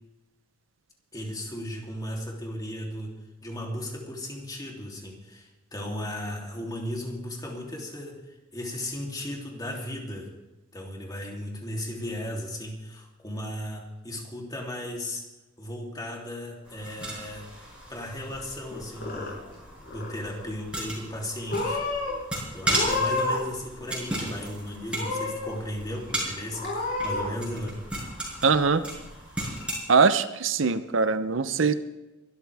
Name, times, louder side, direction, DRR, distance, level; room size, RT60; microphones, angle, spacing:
voice 1, 1.1-3.1 3.4-10.3 10.7-15.2 15.6-17.5 17.9-19.4 19.9-21.8 22.5-27.8, left 1 dB, 20° left, -1 dB, 3.1 m, -36 dB
sound 1, 16.6-29.8, right 1 dB, 5° right, 6.1 m, -35 dB
Purr / Meow, 18.7-19.6 19.8-20.4 21.1-21.2 21.5-22.1 22.6-23.5 23.8-24.5 24.9-25.5 25.9-26.0 26.5-27.3, left 2 dB, 50° left, 6.7 m, -30 dB
voice 2, 28.4-28.8 29.9-31.7, right 5 dB, 80° right, 12 dB, 0.7 m, -22 dB
23.0 x 13.0 x 3.5 m, 1.1 s
head